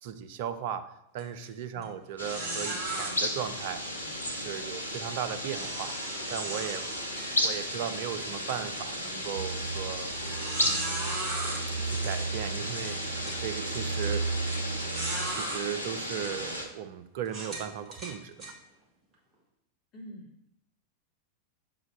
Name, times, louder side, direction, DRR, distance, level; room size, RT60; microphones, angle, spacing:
voice 1, 0.0-3.9 4.2-5.9 6.3-6.9 7.4-10.1 10.6-11.2 11.8-14.4 15.2-18.6, right 9 dB, 50° right, 10 dB, 0.5 m, -37 dB
sound 1, 1.2-1.5 1.8-1.9 2.3-3.1 5.5-7.8 8.3-8.4 9.0-9.1 10.1-11.6 12.5-12.6 13.1-13.4 14.5-14.6 14.9-15.6 16.3-16.4 17.3-18.5, right 2 dB, 25° right, 1.7 m, -37 dB
sound 2, 2.2-16.7, left 1 dB, 85° left, 0.8 m, -34 dB
sound 3, 9.3-15.3, right 4 dB, 75° right, 0.8 m, -35 dB
voice 2, 19.9-20.5, right 1 dB, 35° left, -3 dB, 1.9 m, -47 dB
6.8 x 4.0 x 4.3 m, 0.80 s
figure-of-eight pair, 90°, 0 cm